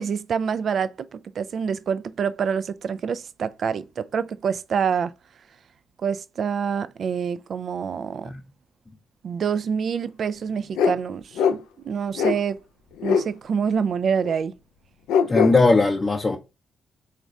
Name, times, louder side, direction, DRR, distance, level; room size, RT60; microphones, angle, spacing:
voice 1, 0.0-5.1 6.0-8.3 9.2-12.6 13.0-14.5, right 6 dB, 55° right, 0.3 m, -26 dB
sound 1, 10.7-11.0 11.4-11.5 12.2-12.4 13.0-13.3 14.2-14.3 15.1-15.5, left 6 dB, 75° left, 0.4 m, -21 dB
voice 2, 15.3-16.4, left 3 dB, 30° left, 0.6 m, -19 dB
4.0 x 2.5 x 4.5 m
hypercardioid pair, 40°, 0 cm